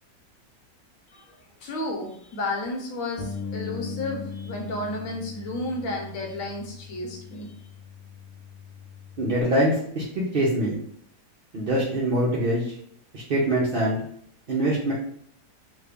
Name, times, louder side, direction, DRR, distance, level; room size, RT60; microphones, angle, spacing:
voice 1, 1.6-7.5, left 2 dB, 60° left, 1 dB, 1.0 m, -32 dB
Bass guitar, 3.2-9.4, left 5 dB, 90° left, 1.2 m, -39 dB
voice 2, 9.2-10.8 11.5-12.6 13.1-14.0 14.5-14.9, right 1 dB, 75° right, -6 dB, 0.5 m, -24 dB
3.2 x 2.2 x 3.4 m, 0.64 s
omnidirectional pair, 1.8 m